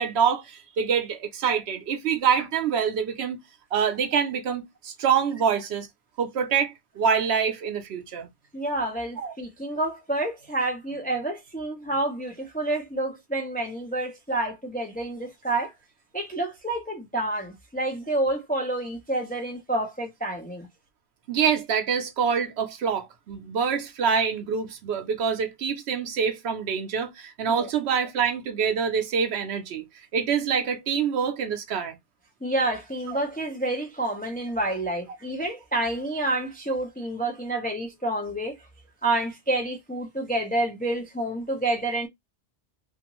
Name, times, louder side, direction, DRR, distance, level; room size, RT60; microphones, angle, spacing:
voice 1, 0.0-3.4 3.7-5.9 6.2-8.3 9.2-9.3 21.3-29.9 30.1-32.0 33.1-33.2, right 7 dB, 85° right, 0.9 m, -26 dB
voice 2, 8.5-15.7 16.1-20.7 27.5-27.7 32.4-38.6 39.0-42.1, right 2 dB, 10° left, 0.4 m, -28 dB
2.6 x 2.4 x 2.9 m
omnidirectional pair, 1.1 m